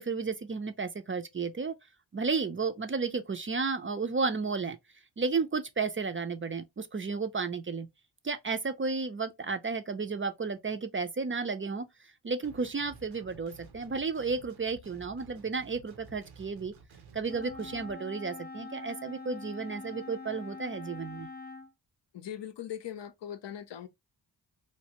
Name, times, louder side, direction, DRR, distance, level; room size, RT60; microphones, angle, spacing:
voice 1, 0.0-1.7 2.1-4.8 5.2-7.9 8.2-11.9 12.2-16.7 17.1-21.3, right 4 dB, 30° right, 0.4 m, -33 dB
sound 1, 12.4-17.9, right 4 dB, 90° right, 0.8 m, -53 dB
Wind instrument woodwind instrument, 17.2-21.7, left 3 dB, 25° left, 0.5 m, -44 dB
voice 2, 22.1-23.9, left 10 dB, 70° left, 0.6 m, -40 dB
3.1 x 2.5 x 2.8 m
cardioid pair, 45°, 45 cm